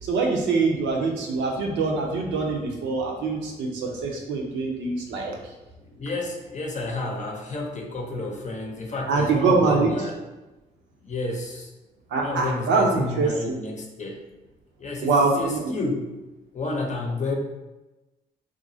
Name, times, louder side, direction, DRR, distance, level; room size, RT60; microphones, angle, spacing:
voice 1, 0.0-5.4 9.1-9.9 12.1-13.3 15.0-15.6, right 4 dB, 70° right, 0 dB, 0.6 m, -24 dB
voice 2, 5.8-10.2 11.0-11.7 12.2-14.2 14.8-16.1 16.5-17.3, left 2 dB, 40° left, 1 dB, 0.8 m, -30 dB
2.9 x 2.5 x 2.6 m, 1.1 s
hypercardioid pair, 45°, 19 cm